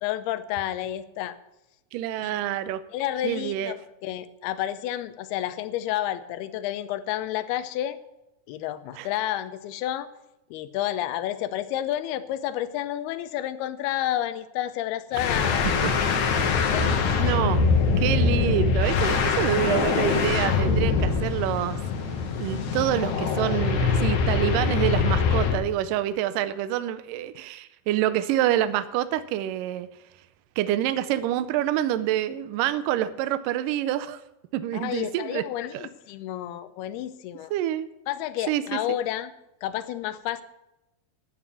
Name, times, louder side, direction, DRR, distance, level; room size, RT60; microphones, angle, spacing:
voice 1, 0.0-1.4 2.2-2.5 2.9-8.0 8.5-10.1 10.5-15.7 16.6-17.3 34.7-37.5 38.1-39.3 39.6-40.4, left 12 dB, 85° left, 12 dB, 2.7 m, -30 dB
voice 2, 1.9-2.8 3.2-3.8 9.0-9.1 15.8-16.2 16.8-16.9 17.2-17.6 18.0-21.8 22.4-29.9 30.6-34.2 34.5-35.5 35.7-35.9 37.5-37.9 38.5-38.8, right 12 dB, 85° right, 13 dB, 1.9 m, -27 dB
sound 1, 15.1-25.7, left 5 dB, 60° left, 2.1 m, -23 dB
11.0 x 9.5 x 7.1 m, 0.96 s
omnidirectional pair, 4.5 m